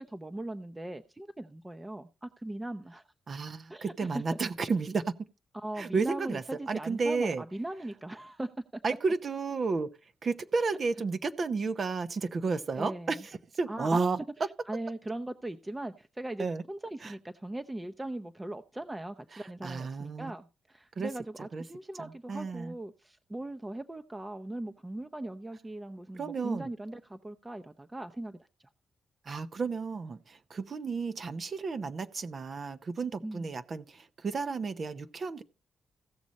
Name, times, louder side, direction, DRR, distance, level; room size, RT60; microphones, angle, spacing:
voice 1, 0.0-3.0 3.7-4.2 5.5-8.8 12.8-13.2 13.7-14.0 14.7-28.5 33.2-33.6, right 1 dB, 20° right, 0.7 m, -39 dB
voice 2, 3.3-5.1 5.8-6.4 6.7-7.4 8.8-9.9 10.2-14.2 16.4-16.6 17.0-17.1 19.3-20.3 21.0-21.1 21.5-21.6 22.0-22.7 26.1-26.7 29.3-35.4, right 4 dB, 55° right, 0.7 m, -32 dB
16.0 x 6.2 x 4.1 m
supercardioid pair, 50°, 0 cm